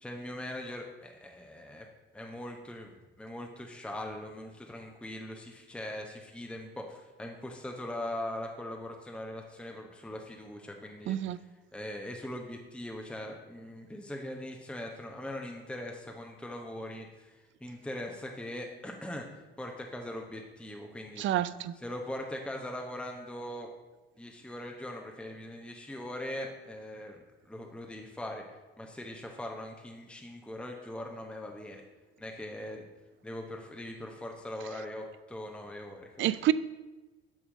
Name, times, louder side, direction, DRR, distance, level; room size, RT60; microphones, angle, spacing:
voice 1, 0.0-1.9 2.1-2.9 3.2-11.5 11.7-19.2 19.6-21.3 21.8-23.7 24.2-28.4 28.8-31.8 32.2-32.9 33.2-36.2, left 1 dB, 5° left, 2 dB, 0.9 m, -41 dB
voice 2, 11.1-11.4 21.2-21.7 36.2-36.5, right 13 dB, 45° right, 16 dB, 0.4 m, -28 dB
6.3 x 6.2 x 5.0 m, 1.2 s
hypercardioid pair, 55°, 29 cm